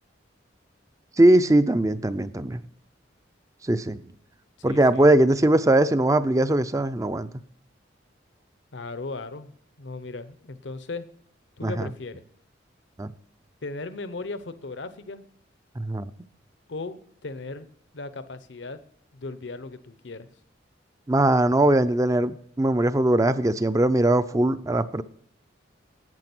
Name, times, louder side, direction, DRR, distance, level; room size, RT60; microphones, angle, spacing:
voice 1, 1.2-2.6 3.6-4.0 4.6-7.3 11.6-11.9 13.0-13.1 15.8-16.1 21.1-25.0, right 1 dB, 15° right, 12 dB, 0.5 m, -20 dB
voice 2, 4.6-5.0 8.7-9.5 9.8-11.1 11.6-12.2 13.6-15.2 16.7-17.7 17.9-18.8 19.1-20.3, left 3 dB, 70° left, 12 dB, 0.8 m, -37 dB
11.0 x 8.7 x 6.0 m, 0.67 s
head